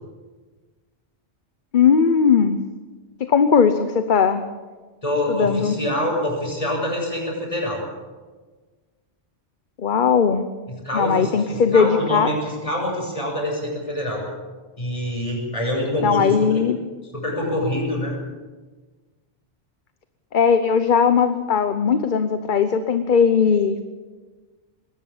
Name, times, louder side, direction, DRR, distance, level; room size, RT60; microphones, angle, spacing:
voice 1, 1.7-2.6 3.2-4.4 5.3-5.8 9.8-10.4 10.9-12.3 16.0-16.8 20.3-23.8, left 6 dB, 45° left, 9 dB, 1.0 m, -18 dB
voice 2, 5.0-7.8 10.7-14.2 14.8-16.5 17.1-18.2, left 1 dB, 30° left, -1 dB, 6.8 m, -25 dB
20.5 x 18.0 x 7.3 m, 1.3 s
omnidirectional pair, 1.2 m